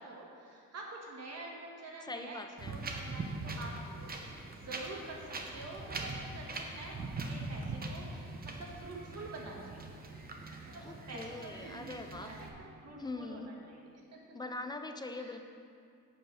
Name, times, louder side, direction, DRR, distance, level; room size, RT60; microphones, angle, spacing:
voice 1, 0.0-4.1 4.5-5.2 5.5-9.8 10.7-14.2 15.1-15.4, right 2 dB, 55° right, -1 dB, 1.6 m, -47 dB
voice 2, 2.1-2.8 10.8-12.4 13.0-13.5 14.3-15.4, left 2 dB, 15° left, 7 dB, 0.4 m, -42 dB
Wind, 2.6-12.5, right 2 dB, 30° right, 0.8 m, -42 dB
8.2 x 7.0 x 5.7 m, 2.3 s
wide cardioid pair, 160°, 31 cm